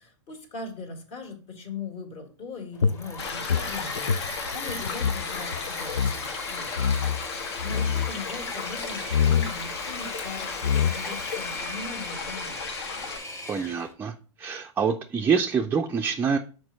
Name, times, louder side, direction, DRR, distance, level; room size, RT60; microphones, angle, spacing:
voice 1, 0.0-4.2 4.5-6.7 7.2-12.6, left 3 dB, 40° left, 4 dB, 1.8 m, -40 dB
Engine / Mechanisms, 2.7-13.9, left 2 dB, 20° left, 1.1 m, -38 dB
sound 1, 2.8-5.2 5.5-5.6 5.9-6.2 6.8-7.2 7.6-8.1 9.1-9.5 10.3-10.4 10.6-11.2, left 7 dB, 85° left, 0.4 m, -25 dB
sound 2, 3.2-13.2, left 5 dB, 65° left, 1.3 m, -35 dB
voice 2, 13.5-14.1 14.4-16.4, right 6 dB, 15° right, 4 dB, 0.4 m, -25 dB
6.0 x 4.5 x 3.9 m, 0.38 s
figure-of-eight pair, 100°, 15 cm